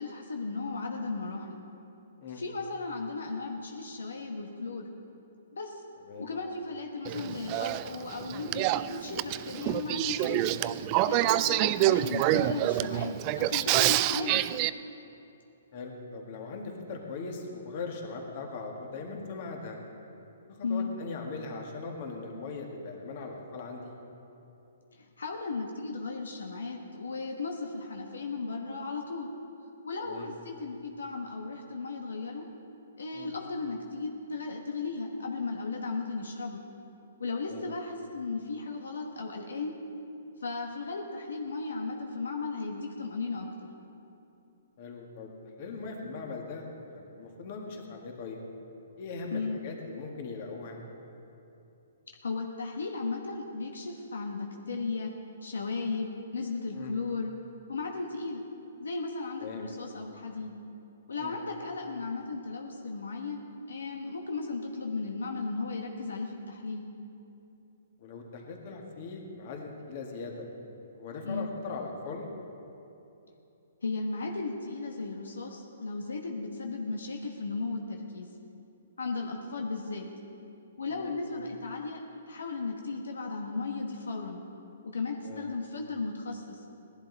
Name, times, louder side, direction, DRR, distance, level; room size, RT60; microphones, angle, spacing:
voice 1, 0.0-1.6 2.3-4.9 5.5-5.8 6.2-10.5 11.0-14.4 20.6-20.9 24.9-29.3 29.8-32.4 33.0-36.6 37.2-39.8 40.4-43.7 49.3-49.6 52.2-55.1 55.4-57.3 57.7-58.4 58.8-60.5 61.1-66.8 71.2-71.5 73.8-78.3 79.0-80.1 80.8-82.0 82.3-84.4 84.8-86.6, left 3 dB, 90° left, 2 dB, 1.2 m, -35 dB
Male speech man speaking / Female speech woman speaking / Conversation, 7.0-14.7, right 15 dB, 30° right, 0.3 m, -27 dB
voice 2, 15.7-19.8 20.5-23.9 30.1-30.3 33.1-33.3 37.5-37.6 44.8-45.3 45.6-48.4 49.0-50.8 56.7-56.9 59.4-59.6 61.2-61.3 68.0-70.5 71.0-72.2 80.9-81.1 85.2-85.4, left 4 dB, 45° left, 1 dB, 2.0 m, -40 dB
18.0 x 11.5 x 4.1 m, 2.9 s
hypercardioid pair, 145°, 0 cm